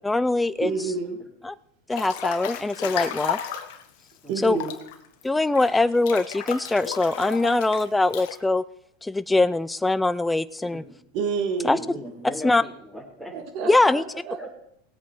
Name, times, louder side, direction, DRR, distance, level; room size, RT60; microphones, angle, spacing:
voice 1, 0.0-0.7 1.4-1.5 1.9-3.4 4.4-4.6 5.2-8.6 9.0-10.8 11.6-11.8 12.4-12.6 13.7-14.0, left 2 dB, 10° left, 15 dB, 0.5 m, -22 dB
voice 2, 0.6-1.2 4.3-4.7 11.1-11.8 13.3-14.4, right 5 dB, 55° right, 5 dB, 2.3 m, -29 dB
Breathing / Bathtub (filling or washing) / Splash splatter, 1.9-3.8 4.4-8.4, left 10 dB, 65° left, 1.4 m, -33 dB
voice 3, 11.8-13.3 14.4-14.6, equal, 10° right, -3 dB, 4.3 m, -39 dB
19.0 x 8.2 x 4.7 m, 0.73 s
hypercardioid pair, 100°, 0 cm